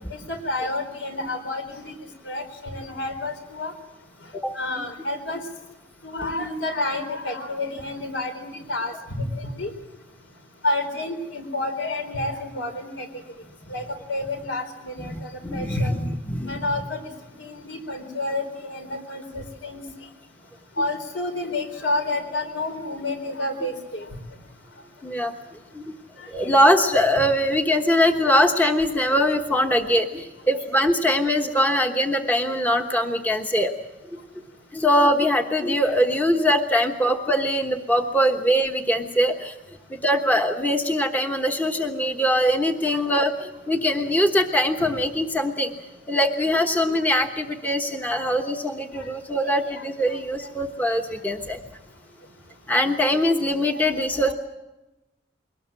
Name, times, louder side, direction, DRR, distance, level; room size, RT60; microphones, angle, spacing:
voice 1, 0.3-2.0 2.3-3.7 4.5-5.4 6.0-9.7 10.6-13.1 13.7-15.9 16.5-17.1 17.4-19.8 20.8-24.1 26.2-26.3 31.6-31.7 35.8-35.9 42.9-43.0 48.1-48.2 49.7-49.8 54.3-54.4, left 2 dB, 75° left, 6 dB, 4.3 m, -29 dB
voice 2, 15.1-16.6 25.0-25.3 25.7-25.8 26.3-33.7 34.1-34.2 34.7-39.6 39.9-45.7 46.1-51.6 52.7-54.3, equal, 10° left, 4 dB, 1.1 m, -22 dB
22.5 x 19.0 x 7.6 m, 1.0 s
head